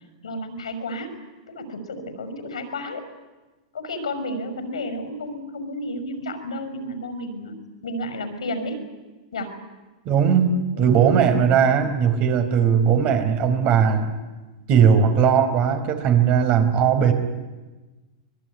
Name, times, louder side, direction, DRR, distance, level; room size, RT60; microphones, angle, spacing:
voice 1, 0.2-1.1 1.5-3.0 3.7-7.6 7.8-8.8 9.3-9.6 10.8-10.9 13.0-13.2, left 1 dB, 90° left, 9 dB, 6.0 m, -32 dB
voice 2, 10.0-14.1 14.7-17.1, right 7 dB, 45° right, 7 dB, 4.9 m, -18 dB
24.5 x 21.5 x 9.7 m, 1.2 s
hypercardioid pair, 110°, 3 cm